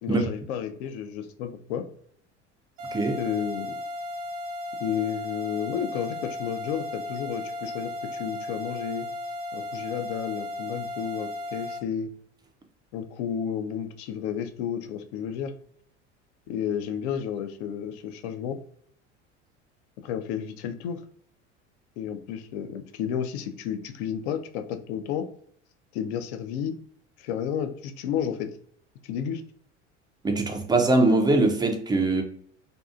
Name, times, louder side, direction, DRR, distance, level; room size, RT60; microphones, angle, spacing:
voice 1, 0.0-1.9 3.1-3.8 4.8-9.1 9.5-12.1 12.9-15.5 16.5-18.6 20.0-21.0 22.0-25.3 25.9-26.8 27.2-28.5 29.0-29.4, left 8 dB, 65° left, 0.5 m, -32 dB
sound 1, 2.8-11.8, left 1 dB, 70° right, 0.8 m, -35 dB
voice 2, 30.2-32.2, right 2 dB, 10° right, 0.4 m, -22 dB
2.6 x 2.3 x 2.4 m
hypercardioid pair, 70°, 36 cm